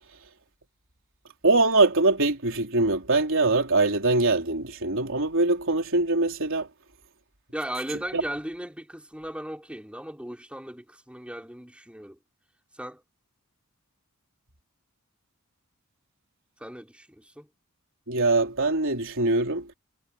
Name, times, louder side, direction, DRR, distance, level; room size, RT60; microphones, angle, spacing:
voice 1, 1.4-6.7 8.1-8.2 18.1-19.7, right 2 dB, 65° right, 3.9 m, -23 dB
voice 2, 7.5-12.2 12.7-13.0 16.6-17.5, equal, 5° right, 5.7 m, -37 dB
head